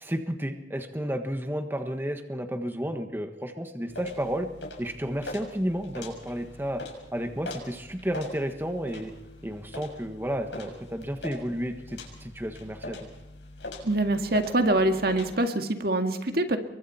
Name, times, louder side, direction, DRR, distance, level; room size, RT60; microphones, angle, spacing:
voice 1, 0.0-4.5 4.8-6.8 7.1-9.1 9.4-13.0, equal, 10° right, 6 dB, 1.4 m, -32 dB
sound 1, 3.9-15.3, left 2 dB, 80° left, 6.7 m, -42 dB
voice 2, 13.8-16.6, right 1 dB, 55° right, 6 dB, 2.1 m, -24 dB
29.0 x 23.5 x 4.3 m, 0.95 s
head